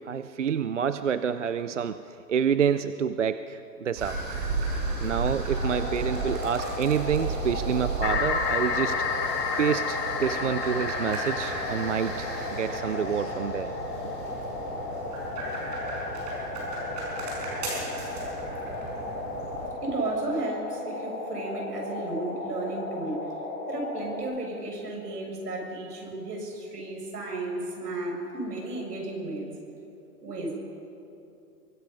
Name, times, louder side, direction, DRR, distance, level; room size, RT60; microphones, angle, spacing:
voice 1, 0.0-4.2 5.0-9.0 9.6-13.7, right 7 dB, 50° right, 12 dB, 0.5 m, -28 dB
sound 1, 3.9-19.7, right 3 dB, 25° right, 5.4 m, -34 dB
sound 2, 5.5-24.2, left 2 dB, 35° left, 5.5 m, -36 dB
sound 3, 8.0-13.7, left 5 dB, 80° left, 2.1 m, -31 dB
voice 2, 19.8-23.3 23.7-29.6 30.2-30.6, right 2 dB, 75° right, 1 dB, 7.0 m, -33 dB
23.5 x 22.5 x 5.4 m, 2.7 s
hypercardioid pair, 180°, 48 cm